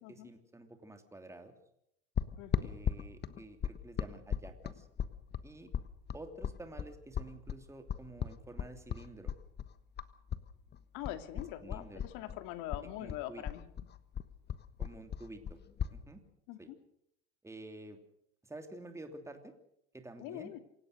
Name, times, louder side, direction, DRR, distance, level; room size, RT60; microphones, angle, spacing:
voice 1, 0.0-1.5 2.6-4.9 5.4-5.7 6.1-9.3 11.3-12.3 13.0-13.4 14.8-15.6 15.9-16.2 16.6-16.7 17.4-18.0 18.4-19.5 19.9-20.5, right 2 dB, 10° right, 6 dB, 2.9 m, -50 dB
sound 1, 2.2-10.5 10.7-12.4 12.7-16.0, left 9 dB, 30° left, 1.3 m, -37 dB
voice 2, 2.4-2.7 10.9-13.6 16.5-16.7 20.2-20.6, left 14 dB, 60° left, 9 dB, 2.5 m, -43 dB
27.0 x 17.0 x 6.6 m, 0.77 s
hypercardioid pair, 100°, 35 cm